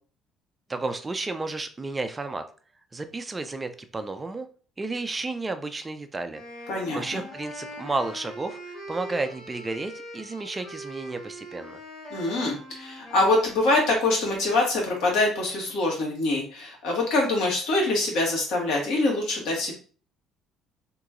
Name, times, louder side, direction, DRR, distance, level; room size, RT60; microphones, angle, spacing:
voice 1, 0.7-2.4 2.9-4.5 4.8-6.4 6.9-11.8, right 3 dB, 15° right, 8 dB, 0.3 m, -32 dB
Wind instrument woodwind instrument, 6.3-14.4, equal, 50° left, 1.8 m, -42 dB
voice 2, 6.7-7.2 12.1-19.7, left 2 dB, 65° left, -2 dB, 1.7 m, -24 dB
2.9 x 2.9 x 3.7 m, 0.42 s
cardioid pair, 165°, 0 cm